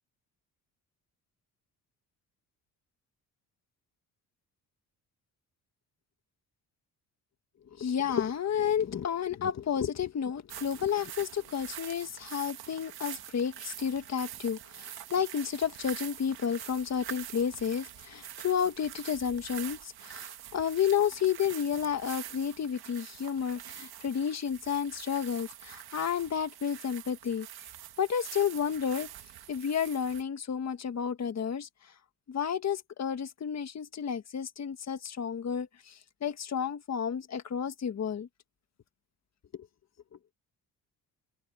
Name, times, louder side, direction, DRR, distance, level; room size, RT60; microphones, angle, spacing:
voice 1, 7.8-27.5 28.0-29.1 29.5-31.9 32.3-38.3 39.5-39.7, left 8 dB, 45° left, 1.6 m, -31 dB
sound 1, 10.5-30.2, right 12 dB, 75° right, 1.8 m, -45 dB
cardioid pair, 105°, 38 cm